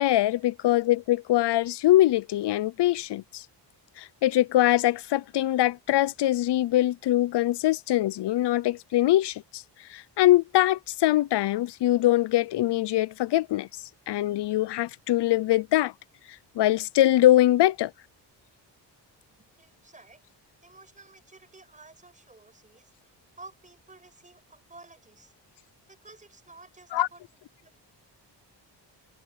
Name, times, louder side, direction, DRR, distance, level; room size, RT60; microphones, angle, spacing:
voice 1, 0.0-3.4 4.0-9.6 9.9-13.7 14.1-15.9 16.6-17.9 26.9-27.1, left 14 dB, 70° left, 0.6 m, -23 dB
voice 2, 19.1-20.2 20.6-25.3 25.9-27.8, right 3 dB, 15° right, 6.3 m, -52 dB
open air
wide cardioid pair, 135°, 43 cm